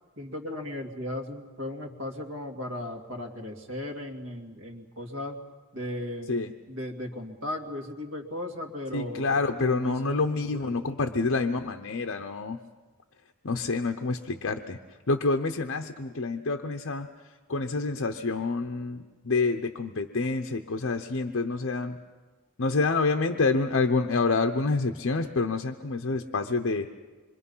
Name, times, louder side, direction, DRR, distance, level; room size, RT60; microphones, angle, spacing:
voice 1, 0.2-5.4 5.7-6.4 6.7-11.1, left 1 dB, 65° right, 2 dB, 2.5 m, -37 dB
voice 2, 8.9-12.6 13.4-14.8 15.1-17.1 17.5-22.0 22.6-26.9, left 3 dB, 60° left, 5 dB, 0.9 m, -27 dB
26.0 x 23.5 x 5.6 m, 1.3 s
head